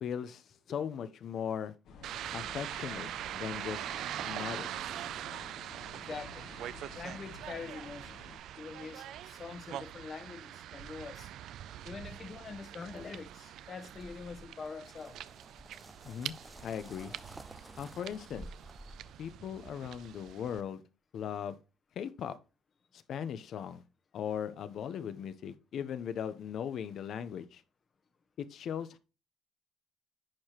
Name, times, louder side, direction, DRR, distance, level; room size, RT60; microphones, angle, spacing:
voice 1, 0.0-1.7 2.3-3.1 3.3-3.9 4.2-4.7 16.0-16.3 16.6-17.1 17.8-18.5 19.2-20.8 21.1-21.6 22.0-22.4 23.1-23.8 24.1-27.6 28.4-29.0, left 8 dB, 65° left, 0.8 m, -38 dB
sound 1, 1.8-8.4, left 4 dB, 80° left, 2.1 m, -52 dB
sound 2, 2.0-20.6, right 11 dB, 75° right, 0.4 m, -43 dB
voice 2, 5.9-6.5 6.9-8.1 8.6-11.3 11.8-15.2, left 5 dB, 40° left, 1.1 m, -44 dB
sound 3, 13.9-19.4, right 1 dB, 5° right, 0.4 m, -52 dB
10.5 x 4.8 x 3.0 m
cardioid pair, 120°, 0 cm